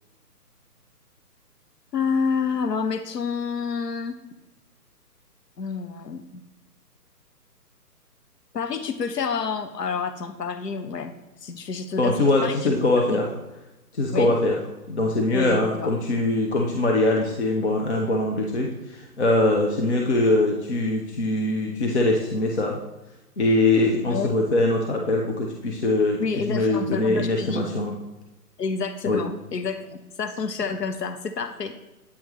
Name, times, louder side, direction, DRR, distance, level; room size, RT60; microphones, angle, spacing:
voice 1, 1.9-4.2 5.6-6.4 8.5-11.1 11.4-12.1 12.4-12.6 12.9-13.2 14.1-14.3 15.3-15.9 24.1-24.3 26.2-27.7 28.6-31.7, left 5 dB, 80° left, 9 dB, 0.7 m, -28 dB
voice 2, 12.0-13.3 13.9-14.6 14.9-22.8 23.4-26.2 26.5-28.0 29.1-29.2, left 2 dB, 45° left, 1 dB, 0.8 m, -22 dB
8.5 x 4.4 x 3.1 m, 1.0 s
figure-of-eight pair, 140°, 48 cm